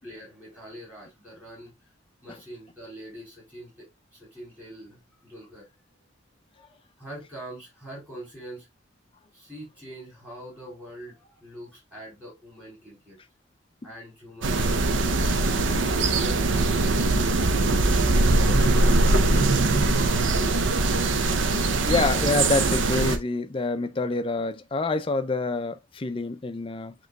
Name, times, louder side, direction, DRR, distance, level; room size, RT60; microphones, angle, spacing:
voice 1, 0.0-1.7 2.2-5.7 6.5-8.7 9.3-13.2 13.8-16.5 16.8-17.4 18.1-21.9, right 1 dB, 5° right, 3.3 m, -44 dB
sound 1, 14.4-23.2, right 2 dB, 65° right, 0.6 m, -22 dB
voice 2, 21.9-26.9, left 3 dB, 25° left, 0.4 m, -27 dB
7.7 x 3.0 x 2.2 m
head